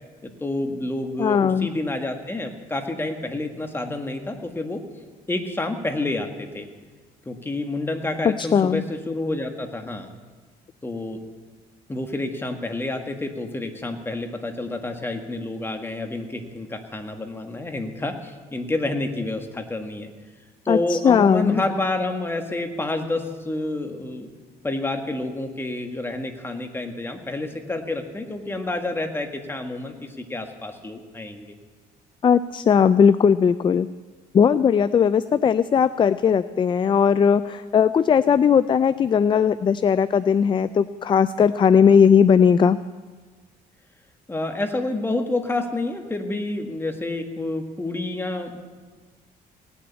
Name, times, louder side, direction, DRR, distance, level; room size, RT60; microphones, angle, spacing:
voice 1, 0.2-4.8 5.3-6.6 7.2-10.1 10.8-11.2 11.9-20.1 20.6-24.3 24.6-31.5 44.3-48.6, left 2 dB, 15° left, 5 dB, 1.7 m, -29 dB
voice 2, 1.2-1.7 8.2-8.8 20.7-21.6 32.2-33.9 34.3-42.8, left 7 dB, 30° left, 14 dB, 0.4 m, -18 dB
18.0 x 7.1 x 9.5 m, 1.4 s
cardioid pair, 110°, 17 cm